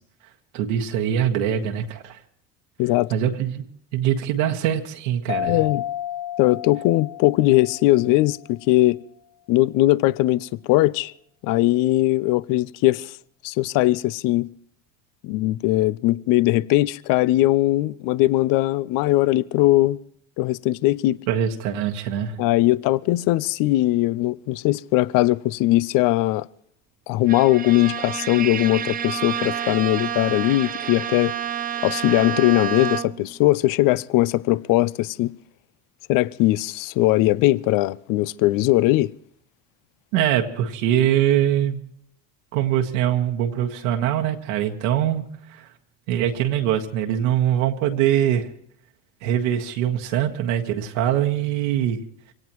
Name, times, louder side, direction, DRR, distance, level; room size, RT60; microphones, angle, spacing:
voice 1, 0.5-2.2 3.1-3.6 3.9-5.6 21.3-22.4 40.1-41.8 42.5-45.7 46.1-48.5 49.2-52.0, right 10 dB, 70° right, 1.6 m, -23 dB
voice 2, 2.8-3.1 5.5-5.8 6.4-9.0 9.5-11.1 11.4-13.1 13.4-14.5 15.2-20.0 20.4-21.2 22.4-26.5 27.1-31.3 31.8-35.3 36.1-39.1, left 17 dB, 55° left, 0.6 m, -20 dB
sound 1, 5.3-8.6, left 11 dB, 80° left, 1.3 m, -31 dB
Bowed string instrument, 27.3-33.4, right 9 dB, 20° right, 0.6 m, -29 dB
24.5 x 17.5 x 3.1 m
hypercardioid pair, 90°, 39 cm